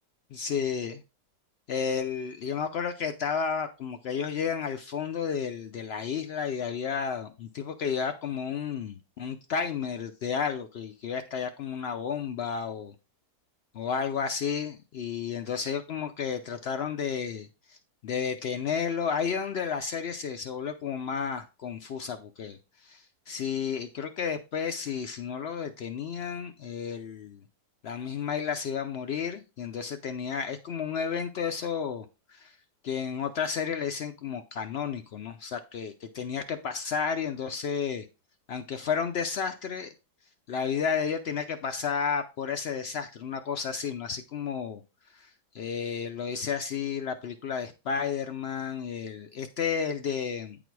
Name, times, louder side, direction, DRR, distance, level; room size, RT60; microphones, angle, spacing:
voice 1, 0.3-1.0 1.7-12.9 13.7-17.8 18.0-27.4 27.8-32.5 32.8-38.1 38.5-39.9 40.5-44.8 45.1-45.3 45.5-50.6, left 6 dB, 80° left, 0.5 m, -32 dB
9.2 x 4.1 x 4.6 m
omnidirectional pair, 1.8 m